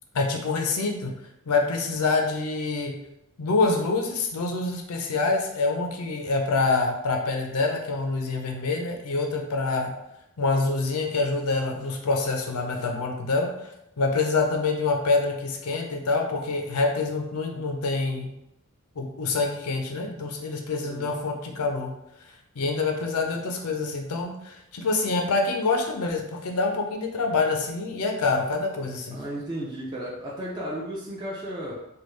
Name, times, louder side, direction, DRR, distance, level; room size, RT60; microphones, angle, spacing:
voice 1, 0.1-1.1 1.5-3.0 3.4-9.9 10.4-13.7 14.0-18.3 19.0-21.9 22.6-29.2, left 3 dB, 90° left, 3 dB, 0.6 m, -26 dB
voice 2, 20.8-21.2 29.1-31.7, right 1 dB, 20° right, -6 dB, 0.5 m, -34 dB
3.4 x 2.3 x 3.1 m, 0.83 s
head